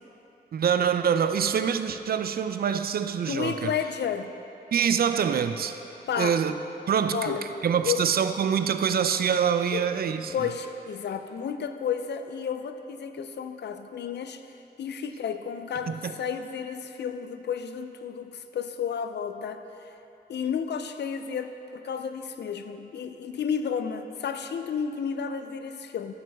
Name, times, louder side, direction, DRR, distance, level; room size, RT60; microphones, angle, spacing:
voice 1, 0.5-3.5 4.7-5.8 6.2-6.5 6.9-7.4 7.6-10.3 15.9-16.1, right 7 dB, 60° right, 9 dB, 0.4 m, -25 dB
voice 2, 3.2-4.3 6.1-6.4 7.1-7.5 7.8-8.0 9.7-19.9 20.3-26.1, left 7 dB, 75° left, 9 dB, 0.5 m, -32 dB
13.5 x 6.1 x 3.5 m, 2.9 s
wide cardioid pair, 100°, 18 cm